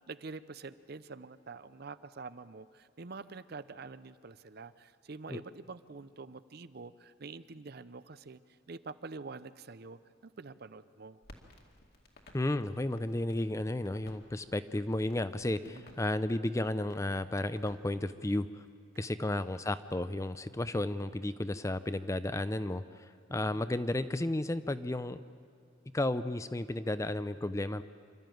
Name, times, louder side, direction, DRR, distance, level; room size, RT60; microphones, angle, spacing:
voice 1, 0.1-8.4 8.7-11.2 15.7-16.0 18.9-19.3, right 4 dB, 50° right, 15 dB, 0.6 m, -46 dB
Crackle, 11.2-18.2, left 1 dB, 50° left, 2.2 m, -59 dB
voice 2, 12.3-18.6 19.0-22.8 23.3-25.2 25.9-27.8, left 1 dB, 15° left, 13 dB, 0.5 m, -33 dB
27.0 x 13.0 x 9.2 m, 2.3 s
head